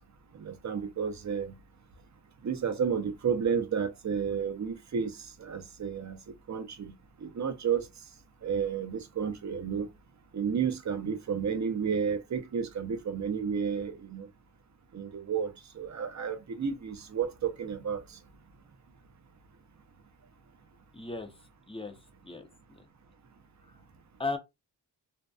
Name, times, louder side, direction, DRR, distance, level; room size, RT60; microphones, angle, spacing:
voice 1, 0.3-1.5 2.4-5.1 5.4-6.2 6.5-6.9 7.2-7.8 8.4-9.9 10.3-14.3 14.9-15.5 15.8-18.0, right 7 dB, 45° right, 0.5 m, -31 dB
voice 2, 20.9-21.4 21.7-22.0 22.2-22.8 23.6-23.8 24.2-24.4, left 3 dB, 15° left, 0.5 m, -37 dB
2.6 x 2.2 x 2.2 m
wide cardioid pair, 85°, 42 cm